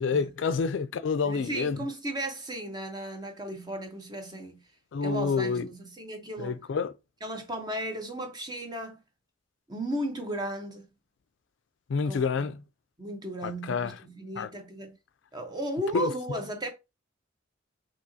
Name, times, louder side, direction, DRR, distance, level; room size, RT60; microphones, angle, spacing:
voice 1, 0.0-1.8 4.9-5.7 6.4-6.9 11.9-12.6 13.4-14.0 14.4-14.5 15.9-16.1, left 5 dB, 65° left, 0.4 m, -28 dB
voice 2, 1.2-4.6 5.0-6.6 7.2-9.0 9.7-10.9 12.0-12.5 13.0-14.9 15.3-16.7, right 1 dB, 20° right, 0.8 m, -35 dB
5.5 x 2.9 x 2.7 m
head